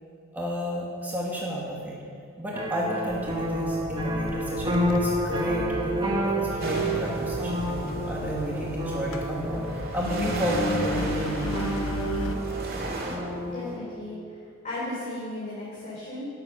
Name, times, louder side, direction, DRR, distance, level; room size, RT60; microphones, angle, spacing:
voice 1, 0.3-2.0 2.4-9.6 9.9-11.7, equal, 10° right, -4 dB, 1.5 m, -31 dB
sound 1, 2.5-13.8, right 1 dB, 25° right, 1.5 m, -30 dB
Engine, 3.1-12.4, left 1 dB, 85° left, 0.9 m, -35 dB
sound 2, 6.6-13.2, right 2 dB, 50° right, 2.1 m, -36 dB
voice 2, 13.4-14.2 14.6-16.3, left 1 dB, 35° left, -7 dB, 3.1 m, -35 dB
12.5 x 9.9 x 6.3 m, 2.4 s
head